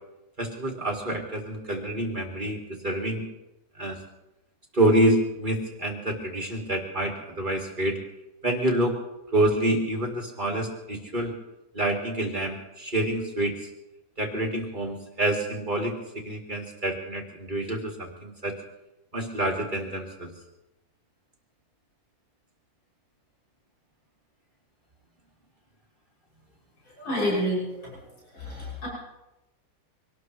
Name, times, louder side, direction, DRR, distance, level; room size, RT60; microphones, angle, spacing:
voice 1, 0.4-3.3 3.8-4.0 4.7-8.0 8.4-9.0 9.3-11.3 11.7-13.6 14.2-15.9 16.2-18.5 19.1-20.3, right 1 dB, 25° right, 1 dB, 2.2 m, -27 dB
voice 2, 27.0-27.9 28.3-28.9, equal, 75° left, -5 dB, 7.3 m, -28 dB
24.5 x 19.0 x 3.1 m, 0.97 s
omnidirectional pair, 2.1 m